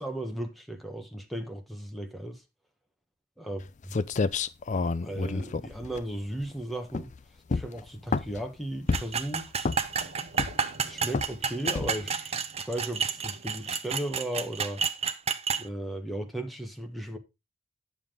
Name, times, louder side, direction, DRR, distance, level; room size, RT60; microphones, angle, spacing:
voice 1, 0.0-2.4 3.4-3.6 3.9-4.0 5.0-7.1 7.5-9.7 10.8-12.4 12.7-14.8 15.6-17.2, right 1 dB, ahead, 1.2 m, -36 dB
sound 1, 3.6-3.7 3.9-6.5 6.9-7.2 7.5-8.5 8.9-9.2 9.6-10.0 10.4-10.8 11.1-11.4 11.8-12.1, left 4 dB, 40° left, 0.4 m, -29 dB
sound 2, 8.9-15.6, right 6 dB, 30° right, 0.7 m, -30 dB
sound 3, 9.1-13.8, right 1 dB, 65° right, 1.9 m, -52 dB
9.7 x 7.1 x 3.7 m
head